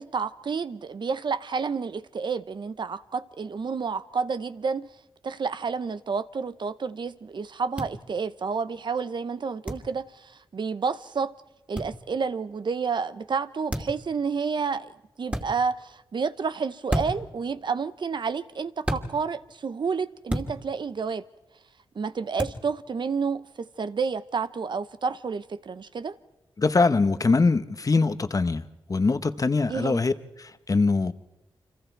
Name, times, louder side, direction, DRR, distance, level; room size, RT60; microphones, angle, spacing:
voice 1, 0.0-4.9 5.2-11.3 11.7-14.9 15.2-21.3 21.9-26.2 29.7-30.0, right 5 dB, 60° right, 0.8 m, -30 dB
sound 1, 7.8-7.9 9.7-9.9 11.8-11.9 13.7-14.0 15.3-15.5 16.9-17.3 18.8-19.1 20.3-20.5 22.4-22.6, equal, 15° right, 2.5 m, -29 dB
voice 2, 26.6-28.6 28.9-30.1 30.4-31.1, left 3 dB, 40° left, 1.0 m, -22 dB
29.5 x 25.5 x 4.6 m
cardioid pair, 70°, 9 cm